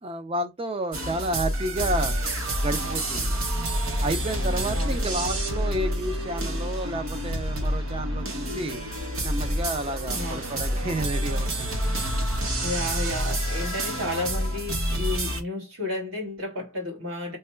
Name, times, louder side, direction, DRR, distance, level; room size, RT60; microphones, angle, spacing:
voice 1, 0.0-2.2 2.6-3.4 4.0-8.8 9.2-11.8, right 1 dB, 25° right, 0.5 m, -31 dB
sound 1, 0.9-15.4, equal, 85° right, 1.0 m, -28 dB
voice 2, 4.7-5.2 10.1-10.6 12.6-17.4, left 1 dB, 65° right, 2.1 m, -32 dB
3.4 x 2.2 x 4.3 m
head